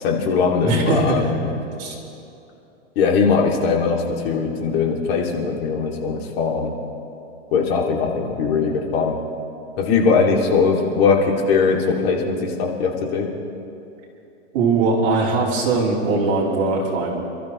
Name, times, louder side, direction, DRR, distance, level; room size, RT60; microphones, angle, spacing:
voice 1, 0.0-1.5 3.0-6.7 7.5-9.2 9.8-13.3, left 5 dB, 55° left, 0 dB, 2.8 m, -20 dB
voice 2, 0.6-1.4 1.8-1.9 14.5-17.2, right 3 dB, 40° right, -6 dB, 4.0 m, -20 dB
28.5 x 13.5 x 3.2 m, 2.8 s
hypercardioid pair, 150°, 37 cm